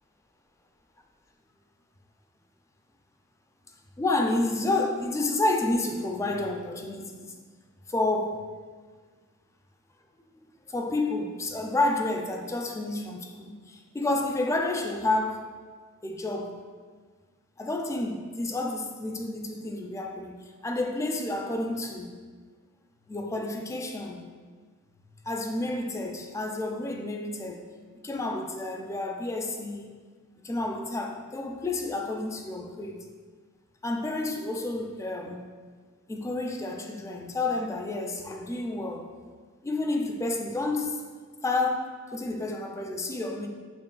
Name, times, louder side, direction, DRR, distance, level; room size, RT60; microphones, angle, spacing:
voice 1, 4.0-7.4 7.9-8.4 10.7-15.5 16.0-16.6 17.6-20.3 20.6-22.1 23.1-24.3 25.3-27.6 27.9-29.9 30.4-33.1 33.8-35.4 36.1-39.1 39.6-41.0 41.4-43.5, left 2 dB, 15° left, 3 dB, 0.3 m, -30 dB
6.9 x 3.0 x 2.3 m, 1.5 s
head